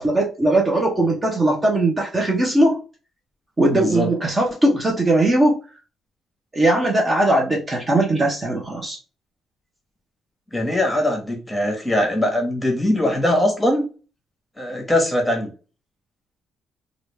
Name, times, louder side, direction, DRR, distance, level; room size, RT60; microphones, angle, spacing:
voice 1, 0.0-2.8 3.6-5.6 6.5-9.0, right 1 dB, 25° right, -1 dB, 1.0 m, -19 dB
voice 2, 3.7-4.1 10.5-13.9 14.6-15.5, left 1 dB, 10° left, 2 dB, 1.3 m, -21 dB
3.1 x 2.6 x 3.2 m, 0.34 s
cardioid pair, 90°, 0 cm